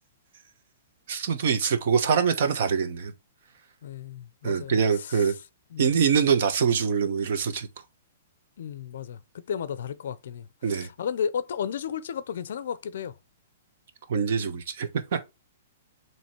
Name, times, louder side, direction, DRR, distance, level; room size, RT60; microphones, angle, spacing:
voice 1, 1.1-3.1 4.4-5.3 5.8-7.7 10.6-10.9 14.1-15.3, right 6 dB, 50° right, 1.0 m, -24 dB
voice 2, 3.8-5.2 5.7-5.9 8.6-13.1, left 8 dB, 60° left, 0.5 m, -34 dB
7.5 x 3.1 x 4.4 m
hypercardioid pair, 175°, 0 cm